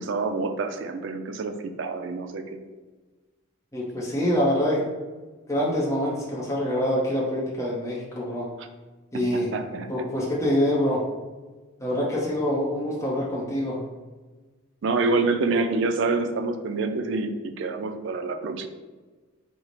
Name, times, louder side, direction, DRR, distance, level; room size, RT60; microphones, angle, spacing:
voice 1, 0.0-2.4 9.1-9.2 9.5-10.0 14.8-18.7, right 3 dB, 60° right, 7 dB, 0.4 m, -27 dB
voice 2, 3.7-4.8 5.5-8.5 9.1-9.5 9.9-11.0 11.8-13.8, equal, 15° left, -5 dB, 0.6 m, -25 dB
4.5 x 2.0 x 3.9 m, 1.3 s
head